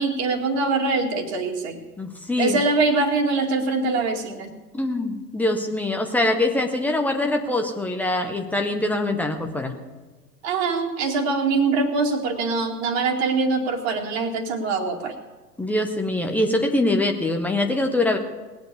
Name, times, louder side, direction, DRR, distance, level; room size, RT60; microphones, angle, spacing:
voice 1, 0.0-1.8 2.4-4.5 10.4-15.2, right 3 dB, 40° right, 2 dB, 2.2 m, -23 dB
voice 2, 2.0-2.6 4.7-9.7 15.6-18.2, left 2 dB, 5° left, 3 dB, 0.6 m, -23 dB
19.5 x 7.8 x 8.0 m, 1.2 s
figure-of-eight pair, 105°, 49 cm